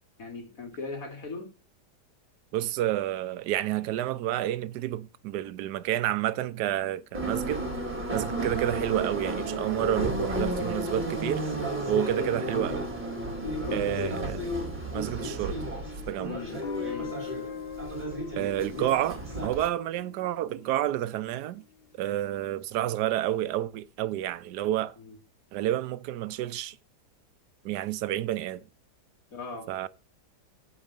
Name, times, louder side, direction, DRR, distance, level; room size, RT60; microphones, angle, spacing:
voice 1, 0.2-1.5 12.2-12.5 13.6-14.2 16.2-17.2 25.0-25.2 29.3-29.7, left 4 dB, 55° left, 2.8 m, -38 dB
voice 2, 2.5-7.6 8.1-11.4 11.9-12.9 13.7-14.4 14.9-15.6 16.1-16.4 18.3-21.6 22.0-24.9 25.5-26.8 27.6-28.6 29.7-29.9, right 13 dB, 80° right, 1.2 m, -29 dB
Subway metro underground, 7.1-19.7, right 1 dB, 25° right, 3.1 m, -33 dB
Guitar, 16.6-21.5, left 6 dB, 35° left, 1.7 m, -41 dB
8.7 x 4.8 x 7.3 m
omnidirectional pair, 1.8 m